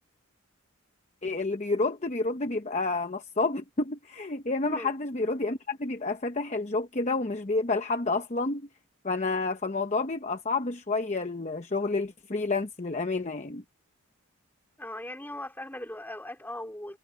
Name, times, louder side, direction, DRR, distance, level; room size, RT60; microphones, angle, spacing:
voice 1, 1.2-8.7 9.0-13.6, left 3 dB, 35° left, 0.9 m, -29 dB
voice 2, 14.8-17.0, left 1 dB, 10° left, 4.2 m, -39 dB
head